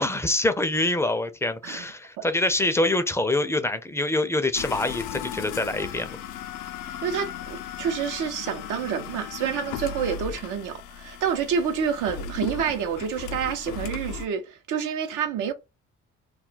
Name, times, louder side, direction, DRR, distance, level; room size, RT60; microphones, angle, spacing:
voice 1, 0.0-6.2, left 2 dB, 10° left, 0.4 m, -25 dB
sound 1, 4.5-14.3, left 7 dB, 90° left, 0.5 m, -36 dB
voice 2, 6.8-15.5, right 7 dB, 85° right, 0.7 m, -28 dB
2.3 x 2.2 x 3.8 m
cardioid pair, 90°, 30 cm